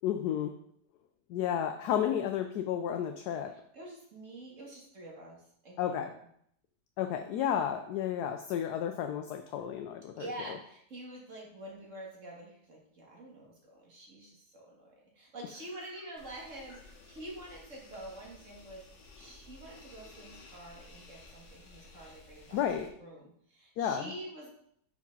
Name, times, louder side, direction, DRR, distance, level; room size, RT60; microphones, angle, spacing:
voice 1, 0.0-0.5 1.3-3.5 5.8-6.1 7.0-10.3 22.5-22.9 23.8-24.1, left 9 dB, 70° left, 5 dB, 1.1 m, -32 dB
voice 2, 3.7-6.3 10.2-18.8 19.2-24.5, right 1 dB, 45° right, -2 dB, 2.2 m, -47 dB
sound 1, 16.2-22.9, left 3 dB, 50° left, 1.2 m, -55 dB
6.0 x 5.0 x 5.3 m, 0.68 s
omnidirectional pair, 1.9 m